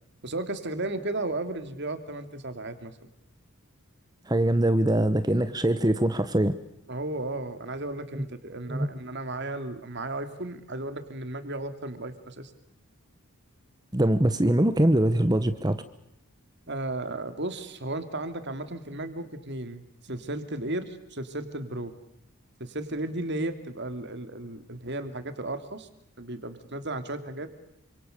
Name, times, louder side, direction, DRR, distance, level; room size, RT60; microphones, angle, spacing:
voice 1, 0.2-3.1 6.9-12.5 16.7-21.9 22.6-25.9 26.2-27.5, right 2 dB, 50° right, 9 dB, 2.8 m, -34 dB
voice 2, 4.3-6.6 8.1-8.2 8.7-8.9 13.9-15.8, right 1 dB, 20° right, 12 dB, 1.1 m, -23 dB
28.5 x 26.5 x 6.8 m, 0.78 s
head